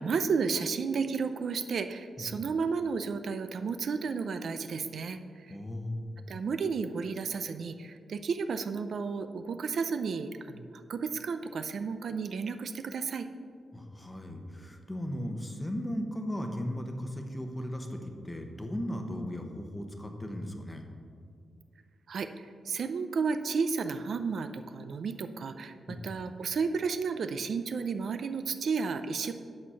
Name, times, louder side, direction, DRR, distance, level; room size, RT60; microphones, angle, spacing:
voice 1, 0.0-5.6 6.3-13.3 22.1-29.3, right 5 dB, 60° right, 9 dB, 0.4 m, -32 dB
voice 2, 5.5-6.2 13.7-18.0 18.2-20.8 25.9-26.1, equal, 10° left, 4 dB, 0.9 m, -36 dB
8.7 x 6.3 x 5.6 m, 2.2 s
wide cardioid pair, 145°, 0 cm